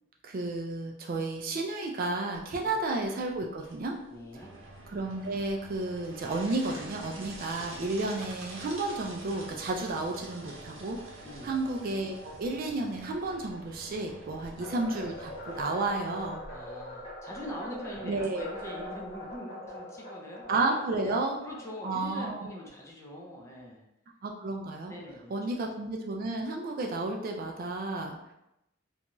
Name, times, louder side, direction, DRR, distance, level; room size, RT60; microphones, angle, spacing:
voice 1, 0.2-4.0 4.9-16.4 18.0-18.5 20.5-21.4 21.8-22.5 24.2-24.9 25.3-28.2, right 2 dB, 45° right, 1 dB, 0.4 m, -32 dB
sound 1, 2.3-19.4, right 2 dB, 80° right, 0.8 m, -47 dB
voice 2, 4.1-4.5 11.2-11.6 14.3-14.8 16.5-20.7 21.0-21.1 21.4-23.8 24.9-25.6, equal, 15° left, -2 dB, 0.5 m, -44 dB
sound 2, 14.6-22.9, left 1 dB, 30° left, 0.9 m, -43 dB
2.6 x 2.2 x 2.9 m, 0.86 s
head